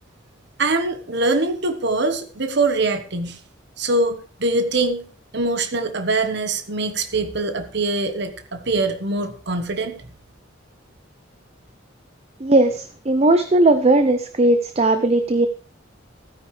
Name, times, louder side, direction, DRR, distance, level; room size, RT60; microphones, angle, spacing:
voice 1, 0.6-3.4 3.8-5.0 5.3-10.0, right 2 dB, 55° right, 8 dB, 1.2 m, -23 dB
voice 2, 12.4-15.5, right 2 dB, 30° right, 9 dB, 0.6 m, -17 dB
16.0 x 9.7 x 3.3 m, 0.38 s
head